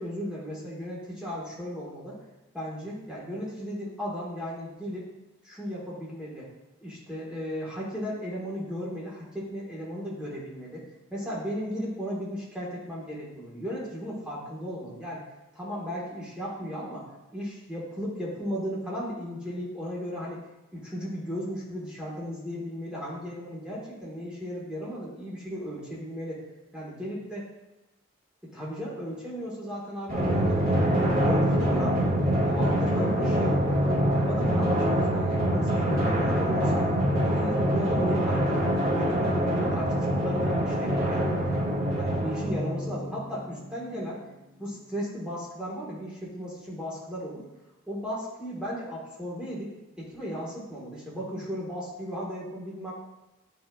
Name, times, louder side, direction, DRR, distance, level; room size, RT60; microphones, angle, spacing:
voice 1, 0.0-2.2 2.5-5.1 5.4-6.5 6.8-10.8 11.1-15.2 15.5-17.0 17.3-20.4 20.7-26.4 26.7-27.4 28.4-32.1 32.4-36.8 37.2-41.5 41.9-44.2 44.6-47.4 47.9-52.9, equal, 5° right, -7 dB, 1.7 m, -35 dB
Drum, 30.1-43.2, equal, 50° right, 2.4 m, -25 dB
9.9 x 4.7 x 2.5 m, 1.0 s
head